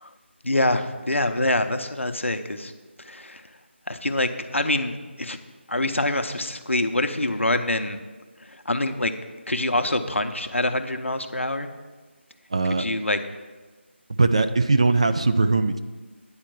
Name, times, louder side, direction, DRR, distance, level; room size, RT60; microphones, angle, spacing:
voice 1, 0.4-2.7 3.0-3.4 3.9-5.4 5.7-8.0 8.7-9.1 9.5-11.7 12.8-13.2, left 1 dB, 75° left, 7 dB, 0.8 m, -25 dB
voice 2, 12.5-12.8 14.2-15.8, right 3 dB, 30° right, 8 dB, 0.3 m, -20 dB
9.6 x 4.5 x 7.4 m, 1.3 s
figure-of-eight pair, 160°, 7 cm